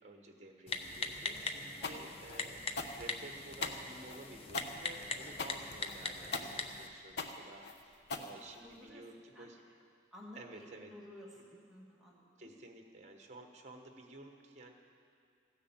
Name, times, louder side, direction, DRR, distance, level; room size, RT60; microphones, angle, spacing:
voice 1, 0.0-9.6 10.3-10.9 12.4-14.7, right 2 dB, 40° right, 3 dB, 1.3 m, -53 dB
Typing, 0.7-6.9, left 3 dB, 35° left, 0.7 m, -41 dB
sound 1, 1.8-8.9, left 3 dB, 70° left, 1.0 m, -42 dB
voice 2, 8.3-9.0 9.3-9.5 10.1-11.4 11.7-12.5, left 1 dB, ahead, -5 dB, 2.1 m, -54 dB
15.5 x 10.0 x 7.4 m, 2.4 s
head